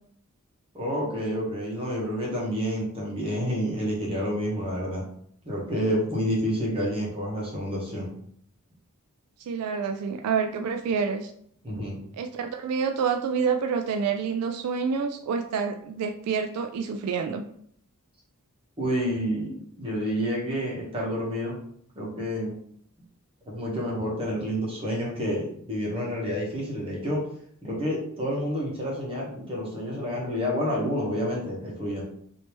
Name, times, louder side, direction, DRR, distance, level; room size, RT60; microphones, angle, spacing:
voice 1, 0.7-5.0 5.4-8.1 11.6-12.0 18.8-21.6 21.9-22.5 23.4-27.2 27.6-32.0, equal, 25° right, -4 dB, 1.1 m, -29 dB
voice 2, 9.5-11.3 12.2-17.4, right 6 dB, 80° right, 6 dB, 0.3 m, -28 dB
3.2 x 2.8 x 3.0 m, 0.65 s
head